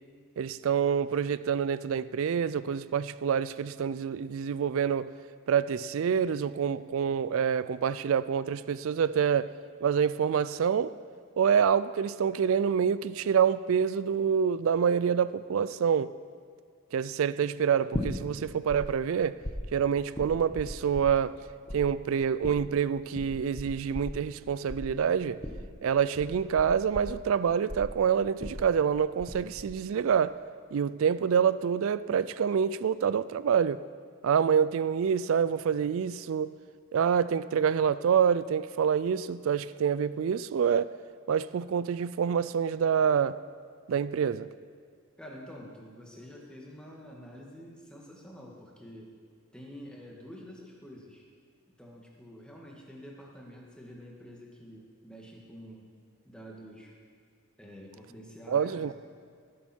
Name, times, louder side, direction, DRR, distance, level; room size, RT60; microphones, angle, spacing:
voice 1, 0.4-5.1 5.5-9.5 9.8-10.9 11.4-16.1 16.9-19.4 19.7-21.3 21.7-25.4 25.8-30.3 30.7-33.8 34.2-36.5 36.9-40.9 41.3-43.4 43.9-44.5 58.5-58.9, right 7 dB, 65° right, 16 dB, 0.3 m, -27 dB
sound 1, 17.9-18.8 19.0-21.4 21.7-29.3 29.6-30.1, left 1 dB, 25° left, 1.2 m, -38 dB
voice 2, 45.2-49.1 49.5-51.2 51.8-55.9 56.3-56.9 57.6-58.9, equal, 5° left, -2 dB, 1.9 m, -47 dB
19.0 x 10.0 x 4.5 m, 2.1 s
head